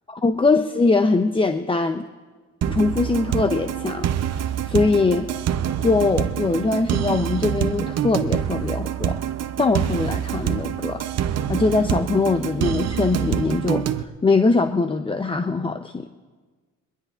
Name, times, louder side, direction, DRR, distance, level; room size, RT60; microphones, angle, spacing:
voice 1, 0.1-2.0 2.7-5.3 5.8-9.2 9.6-11.0 11.5-16.1, left 3 dB, 20° left, 7 dB, 0.6 m, -22 dB
sound 1, 2.6-14.0, right 10 dB, 55° right, 0.7 m, -26 dB
22.0 x 21.5 x 2.5 m, 1.4 s
cardioid pair, 90°, 30 cm